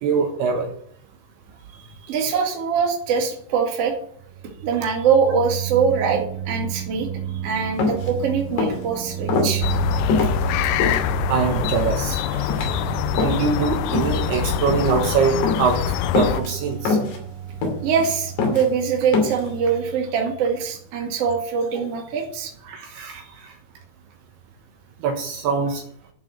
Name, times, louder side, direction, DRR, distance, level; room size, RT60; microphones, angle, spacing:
voice 1, 0.0-0.7 10.2-10.3 10.9-11.0 11.3-12.5 13.1-17.1 22.6-23.5 25.0-25.8, right 5 dB, 70° right, 2 dB, 3.1 m, -24 dB
voice 2, 2.0-3.9 4.6-7.1 7.4-9.6 17.8-22.5, right 6 dB, 40° right, 1 dB, 2.5 m, -23 dB
sound 1, 4.2-20.9, right 10 dB, 85° right, 3.5 m, -32 dB
sound 2, 7.8-8.1 8.5-8.9 9.3-9.5 10.1-11.0 11.6-11.9 12.3-12.7 13.2-13.6 13.9-14.3 14.6-14.9 15.4-15.8 16.2-16.5 16.9-17.2 17.6-18.1 18.4-18.7 19.1-19.5, left 4 dB, 65° left, 4.7 m, -23 dB
sound 3, 9.6-16.4, left 12 dB, 85° left, 2.9 m, -25 dB
11.5 x 7.4 x 6.6 m, 0.62 s
omnidirectional pair, 5.3 m